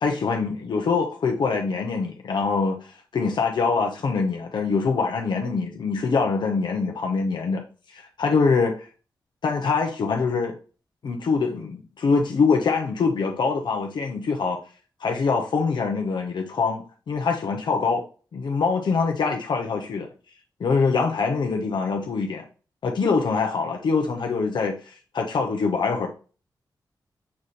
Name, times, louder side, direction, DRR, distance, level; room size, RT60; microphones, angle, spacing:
voice 1, 0.0-7.6 7.9-8.8 9.4-10.6 11.0-14.6 15.0-18.0 18.3-20.1 20.6-22.4 22.8-26.1, left 4 dB, 75° left, 0.9 m, -24 dB
7.2 x 3.2 x 4.2 m
wide cardioid pair, 140°, 8 cm